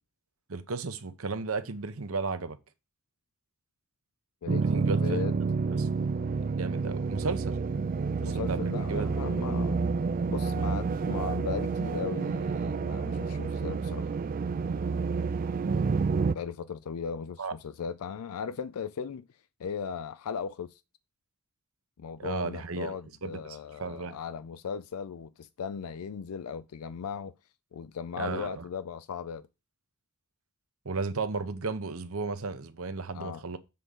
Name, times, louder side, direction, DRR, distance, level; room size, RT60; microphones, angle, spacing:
voice 1, 0.5-2.6 4.6-5.2 5.7-5.9 6.3-7.6 8.2-9.1 17.4-17.5 22.2-22.9 23.2-24.2 28.2-28.6 30.8-33.6, right 4 dB, 70° right, 0.9 m, -34 dB
voice 2, 4.4-5.4 8.2-9.8 10.3-14.1 16.3-19.3 19.6-20.8 22.0-27.3 27.7-29.5 33.1-33.5, left 6 dB, 90° left, 0.4 m, -37 dB
sound 1, 4.5-16.3, right 4 dB, 40° right, 0.3 m, -29 dB
7.4 x 3.8 x 6.4 m
head